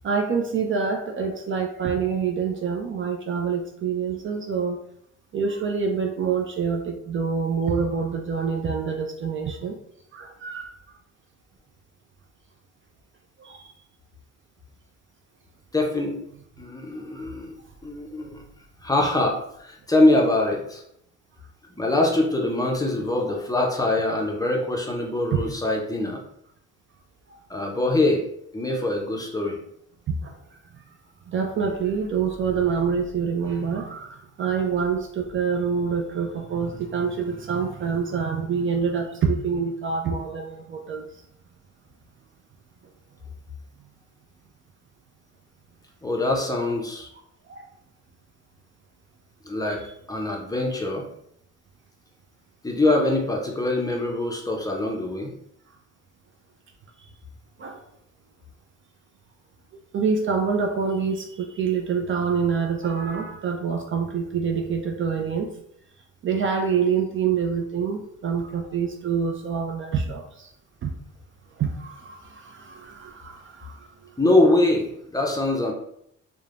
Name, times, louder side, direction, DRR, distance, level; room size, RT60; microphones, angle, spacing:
voice 1, 0.0-4.8 5.3-9.8 10.1-10.7 13.4-13.7 17.1-17.3 25.3-25.4 30.1-30.4 30.7-30.8 31.3-41.2 47.5-47.7 57.6-57.8 59.9-65.5 66.2-70.5 70.8-70.9 71.6-73.9, right 6 dB, 45° right, 4 dB, 0.4 m, -26 dB
voice 2, 15.7-16.3 16.6-17.5 17.8-18.4 18.8-20.8 21.8-26.2 27.5-28.3 28.5-29.6 46.0-47.1 49.4-49.8 50.1-51.1 52.6-55.3 74.2-75.7, left 2 dB, 10° left, 0 dB, 0.5 m, -23 dB
3.0 x 2.2 x 2.4 m, 0.73 s
cardioid pair, 90°, 30 cm